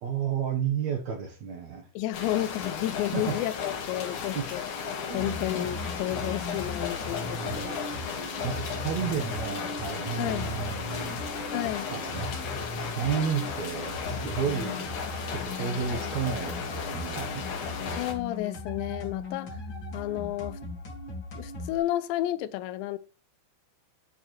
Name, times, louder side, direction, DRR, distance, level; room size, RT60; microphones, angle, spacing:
voice 1, 0.0-1.9 3.1-3.4 4.3-4.5 5.1-5.4 7.4-7.8 8.4-11.2 11.9-12.3 12.8-14.9 15.3-17.4, right 7 dB, 70° right, 1.7 m, -32 dB
voice 2, 2.0-4.6 5.1-7.8 10.2-10.5 11.5-11.9 17.8-19.6 19.9-20.6 21.4-23.0, left 14 dB, 85° left, 2.8 m, -31 dB
sound 1, 2.1-18.1, left 6 dB, 55° left, 2.7 m, -35 dB
sound 2, 5.2-21.8, left 2 dB, 40° left, 1.8 m, -38 dB
11.0 x 8.8 x 3.2 m
omnidirectional pair, 5.1 m